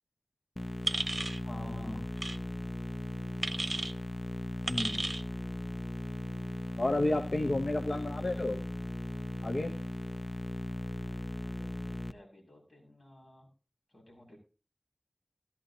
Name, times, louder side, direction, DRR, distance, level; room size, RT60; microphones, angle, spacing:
sound 1, 0.6-12.1, left 1 dB, 45° left, 0.7 m, -38 dB
sound 2, 0.9-1.4 2.2-2.4 3.4-3.9 4.7-5.2, right 2 dB, 60° right, 0.7 m, -33 dB
voice 1, 1.4-2.0 11.4-13.5 13.9-14.4, left 1 dB, 65° left, -1 dB, 6.2 m, -49 dB
voice 2, 4.6-5.0 6.8-8.6 9.4-9.8, left 2 dB, 80° left, 4 dB, 0.9 m, -31 dB
16.0 x 11.5 x 2.8 m, 0.35 s
wide cardioid pair, 50°, 0 cm